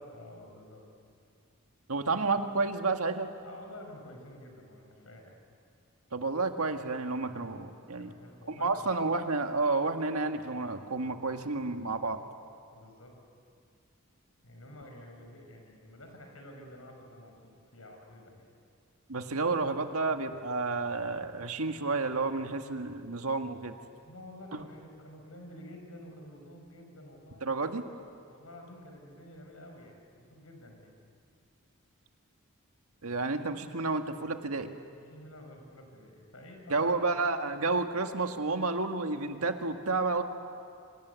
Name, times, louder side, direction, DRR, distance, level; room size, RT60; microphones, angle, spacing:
voice 1, 0.1-0.8 3.4-5.4 8.0-8.9 12.7-13.1 14.4-18.5 24.0-27.7 28.2-30.9 35.0-37.1, left 1 dB, 80° left, 2 dB, 6.0 m, -49 dB
voice 2, 1.9-3.3 6.1-8.1 8.5-12.2 19.1-23.8 27.4-27.8 33.0-34.7 36.7-40.2, right 3 dB, 90° right, 5 dB, 1.8 m, -30 dB
28.0 x 25.0 x 8.3 m, 2.4 s
head